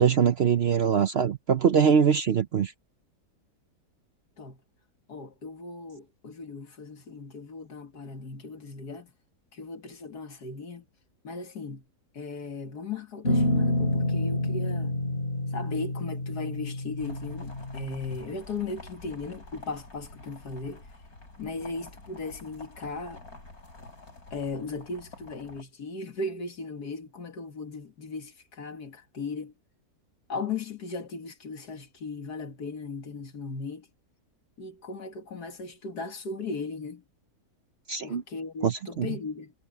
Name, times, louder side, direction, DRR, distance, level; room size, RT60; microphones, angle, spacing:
voice 1, 0.0-2.7 37.9-38.2 38.6-39.1, right 7 dB, 55° right, 0.8 m, -23 dB
voice 2, 5.1-9.1 9.5-10.8 11.2-11.9 12.1-15.0 15.5-20.8 21.4-23.2 24.3-29.5 30.3-33.9 34.6-37.0 38.0-39.5, left 3 dB, 80° left, 2.6 m, -37 dB
sound 1, 13.2-18.3, left 1 dB, 40° left, 3.3 m, -28 dB
sound 2, 17.0-25.6, left 2 dB, 65° left, 7.3 m, -48 dB
omnidirectional pair, 1.7 m